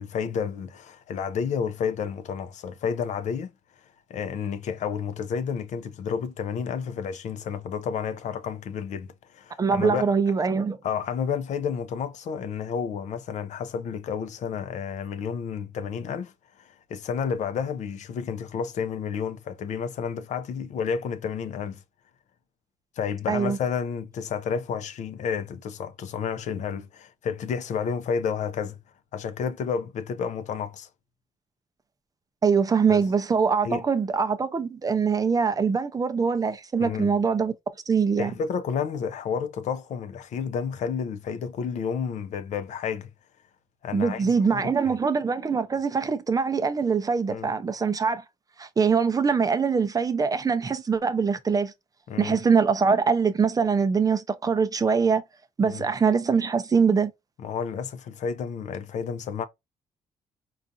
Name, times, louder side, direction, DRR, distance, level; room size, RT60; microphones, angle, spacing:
voice 1, 0.0-3.5 4.1-10.1 10.8-21.8 23.0-28.8 29.1-30.9 32.9-33.0 33.6-33.8 36.8-37.1 38.2-43.1 43.8-45.0 47.3-47.5 52.1-52.4 55.6-55.9 57.4-59.4, left 6 dB, 65° left, 0.5 m, -31 dB
voice 2, 9.6-10.8 23.3-23.6 32.4-37.5 37.9-38.3 43.9-48.2 48.6-51.7 52.2-55.2 55.6-57.1, right 5 dB, 30° right, 0.5 m, -23 dB
3.9 x 2.4 x 2.6 m
cardioid pair, 100°, 13 cm